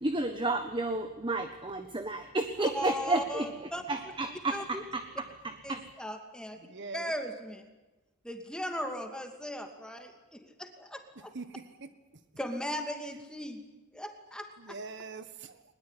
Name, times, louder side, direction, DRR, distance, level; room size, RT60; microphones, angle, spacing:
voice 1, 0.0-5.8, right 2 dB, 20° right, 8 dB, 1.3 m, -32 dB
voice 2, 2.6-4.0 4.5-4.8 5.6-6.6 6.9-7.6 8.2-11.3 12.4-13.6 13.9-14.8, equal, 5° left, 5 dB, 2.5 m, -38 dB
voice 3, 6.6-7.1 11.3-11.9 14.6-15.6, right 4 dB, 50° right, 11 dB, 1.4 m, -43 dB
21.5 x 21.0 x 9.9 m, 1.1 s
head